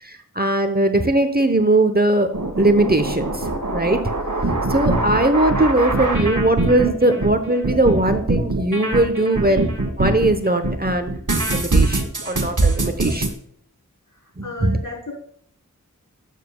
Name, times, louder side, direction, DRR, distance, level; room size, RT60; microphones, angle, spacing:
voice 1, 0.0-2.3 2.6-4.0 4.7-9.7 10.0-11.1 11.5-13.3 14.4-14.8, right 2 dB, 30° right, 8 dB, 0.9 m, -19 dB
sound 1, 2.3-10.3 10.6-13.3, right 2 dB, 65° right, 1.5 m, -22 dB
voice 2, 14.4-15.1, left 3 dB, 65° left, -2 dB, 3.7 m, -32 dB
11.0 x 7.4 x 2.3 m, 0.66 s
wide cardioid pair, 40°, 33 cm